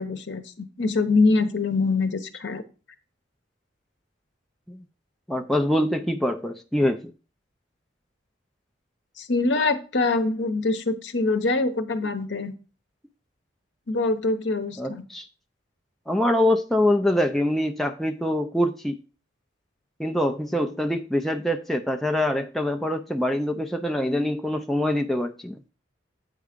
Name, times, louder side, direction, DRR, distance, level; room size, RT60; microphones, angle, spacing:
voice 1, 0.0-2.6 9.2-12.5 13.9-15.0, left 3 dB, 70° left, 0.9 m, -24 dB
voice 2, 5.3-7.1 14.8-15.3 16.1-19.0 20.0-25.6, left 1 dB, ahead, 0.4 m, -24 dB
8.2 x 4.7 x 5.0 m
head